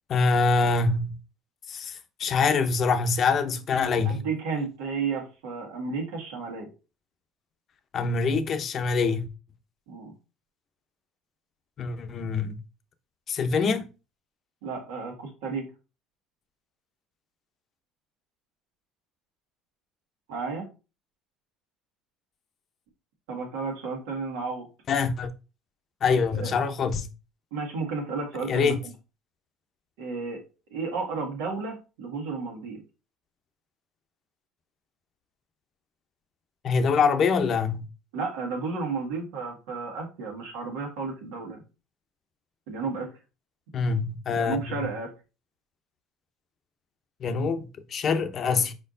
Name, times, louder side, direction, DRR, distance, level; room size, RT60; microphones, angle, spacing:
voice 1, 0.1-1.2 1.7-4.2 7.9-9.3 11.8-12.6 13.3-13.9 24.9-25.3 26.0-27.1 28.5-28.8 36.6-37.8 43.7-44.8 47.2-48.7, left 4 dB, 45° left, 0.7 m, -25 dB
voice 2, 4.0-6.7 9.9-10.1 14.6-15.7 20.3-20.7 23.3-24.7 26.3-26.5 27.5-28.7 30.0-30.4 30.7-32.8 38.1-41.6 42.7-43.1 44.3-45.1, right 4 dB, 85° right, 1.7 m, -32 dB
4.5 x 4.4 x 2.6 m
supercardioid pair, 95°, 0 cm